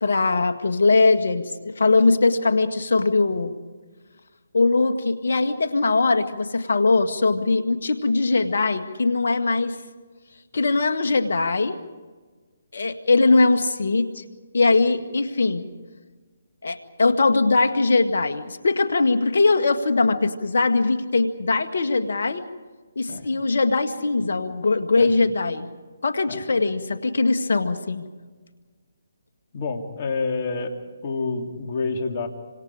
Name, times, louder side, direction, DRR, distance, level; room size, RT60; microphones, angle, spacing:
voice 1, 0.0-3.5 4.5-9.8 10.5-11.8 12.7-14.2 14.5-15.7 16.6-22.4 23.0-25.7 26.0-28.1, left 3 dB, 70° left, 7 dB, 1.9 m, -21 dB
voice 2, 29.5-30.7 31.0-32.3, left 4 dB, 40° left, 4 dB, 3.3 m, -28 dB
28.0 x 26.0 x 5.0 m, 1.4 s
figure-of-eight pair, 145°, 0 cm